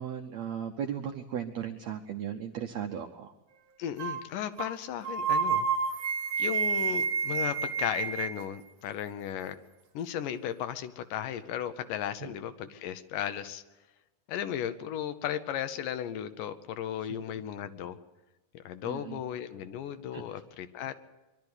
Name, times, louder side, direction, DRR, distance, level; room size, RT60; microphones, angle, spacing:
voice 1, 0.0-3.3 12.2-12.3 17.0-17.1 18.8-19.2 20.1-20.4, right 8 dB, 80° right, 5 dB, 1.5 m, -37 dB
voice 2, 3.8-5.7 6.4-9.6 10.0-13.6 14.3-18.0 18.5-20.9, left 10 dB, 75° left, 11 dB, 2.2 m, -35 dB
sound 1, 4.0-4.2 4.6-4.7 5.0-8.4, right 5 dB, 55° right, 2.1 m, -29 dB
23.0 x 12.0 x 9.6 m, 1.1 s
omnidirectional pair, 4.1 m